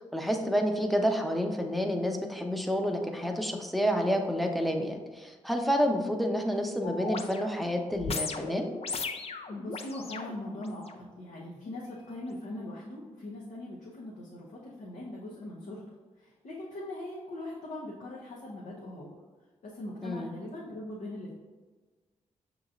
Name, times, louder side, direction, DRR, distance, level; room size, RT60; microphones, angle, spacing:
voice 1, 0.1-8.7 20.0-20.3, equal, ahead, 3 dB, 0.6 m, -29 dB
sound 1, 6.8-11.0 11.6-11.7, left 4 dB, 50° left, 0.5 m, -38 dB
voice 2, 9.5-15.8 16.2-19.1 19.6-21.4, left 1 dB, 70° left, -5 dB, 0.8 m, -41 dB
6.2 x 3.1 x 2.5 m, 1.4 s
cardioid pair, 60°, 13 cm